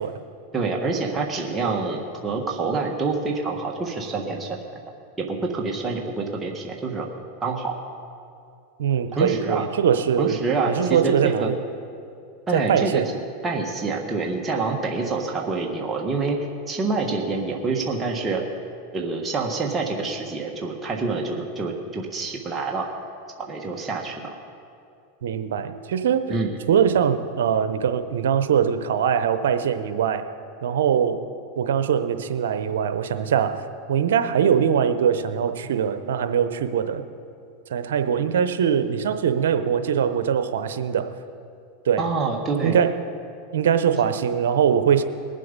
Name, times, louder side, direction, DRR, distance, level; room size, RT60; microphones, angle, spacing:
voice 1, 0.5-4.6 5.2-7.1 7.4-7.8 9.1-9.7 10.2-10.7 11.0-11.5 12.5-13.0 13.4-16.4 16.7-18.4 18.9-22.9 23.4-24.3 26.3-26.5 42.0-42.8, right 4 dB, 20° right, 0 dB, 1.5 m, -26 dB
voice 2, 8.8-10.4 10.7-11.6 12.5-13.1 25.2-30.2 30.6-31.2 31.6-33.6 33.9-37.0 37.7-41.1 41.9-42.0 42.6-42.9 43.5-45.0, right 8 dB, 85° right, 10 dB, 0.8 m, -22 dB
20.5 x 7.6 x 5.3 m, 2.5 s
supercardioid pair, 120°, 0 cm